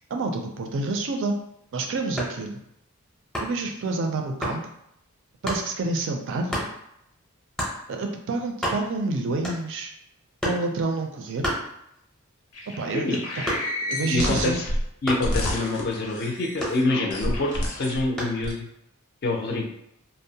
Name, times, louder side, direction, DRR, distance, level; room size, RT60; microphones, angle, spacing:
voice 1, 0.1-1.4 1.7-2.6 3.4-4.6 5.4-6.7 7.9-9.9 10.4-11.5 12.8-13.5 13.9-14.6, right 3 dB, 55° right, 3 dB, 0.4 m, -28 dB
sound 1, 2.2-2.5 3.3-3.7 4.4-4.6 5.5-5.7 6.5-6.7 7.6-7.8 8.2-8.3 8.5-9.1 9.4-9.8 10.4-10.7 11.4-12.2 12.5-13.9 15.0-15.4 16.6-17.3 18.2-18.5, equal, 5° left, 0.6 m, -30 dB
sound 2, 12.5-14.9 15.2-18.0 18.4-18.5, left 1 dB, 90° left, 0.6 m, -30 dB
voice 2, 14.0-14.6 15.0-18.7 19.2-19.6, left 2 dB, 45° left, 2 dB, 0.4 m, -26 dB
2.6 x 2.0 x 2.7 m, 0.77 s
head